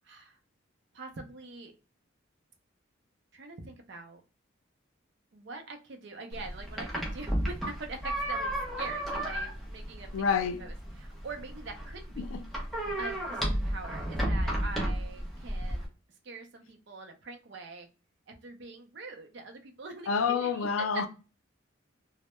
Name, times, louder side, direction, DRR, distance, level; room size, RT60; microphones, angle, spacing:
voice 1, 0.0-0.4 0.9-1.7 3.3-4.2 5.3-10.1 10.6-12.4 13.0-15.9 16.2-17.9 18.3-21.0, right 3 dB, 55° right, 0.5 m, -44 dB
sound 1, 6.3-15.9, right 1 dB, ahead, 0.5 m, -33 dB
voice 2, 10.1-10.6 12.2-12.4 20.1-21.1, left 6 dB, 85° left, 0.4 m, -28 dB
2.1 x 2.0 x 2.9 m
head